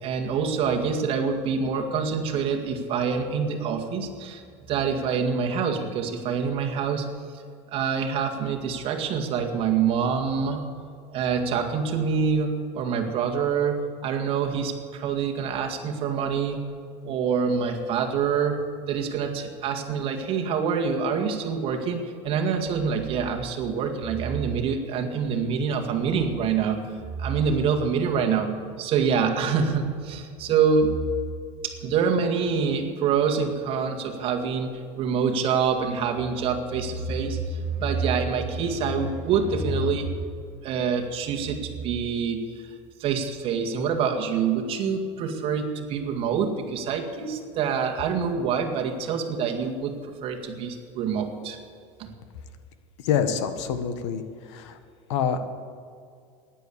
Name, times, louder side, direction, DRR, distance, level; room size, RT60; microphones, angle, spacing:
voice 1, 0.0-4.4 4.7-7.1 7.7-10.6 11.1-16.6 17.0-18.6 18.9-26.8 27.2-28.5 28.8-30.9 31.6-40.1 40.6-42.7 43.0-51.6 52.0-52.1, right 6 dB, 35° right, 3 dB, 1.9 m, -26 dB
voice 2, 53.0-54.2 54.5-54.8 55.1-55.4, left 8 dB, 75° left, 9 dB, 1.5 m, -26 dB
14.5 x 10.5 x 8.4 m, 2.3 s
supercardioid pair, 160°, 15 cm